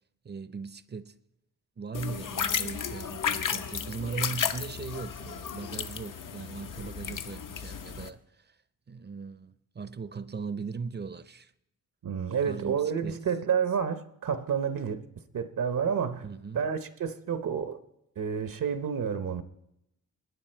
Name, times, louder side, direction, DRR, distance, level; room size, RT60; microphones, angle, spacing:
voice 1, 0.2-1.1 1.8-8.6 8.9-11.5 12.3-13.2 16.2-16.6, right 5 dB, 30° right, 0.5 m, -39 dB
sound 1, 1.9-8.1, left 7 dB, 70° left, 0.8 m, -33 dB
voice 2, 12.0-15.0 15.3-16.2 16.5-17.8 18.2-19.4, right 7 dB, 70° right, 0.8 m, -29 dB
22.5 x 9.9 x 4.4 m
wide cardioid pair, 130°, 33 cm